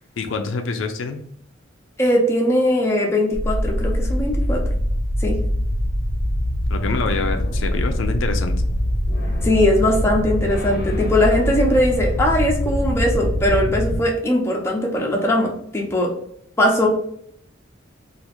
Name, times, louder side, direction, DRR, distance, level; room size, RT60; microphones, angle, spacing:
voice 1, 0.2-1.2 6.7-8.5, left 4 dB, 80° left, 6 dB, 0.4 m, -26 dB
voice 2, 2.0-4.6 5.2-5.4 9.4-16.1 16.6-16.9, left 1 dB, 15° left, -2 dB, 0.7 m, -20 dB
sound 1, 3.3-14.0, equal, 45° left, 0.7 m, -23 dB
2.9 x 2.4 x 3.4 m, 0.69 s
head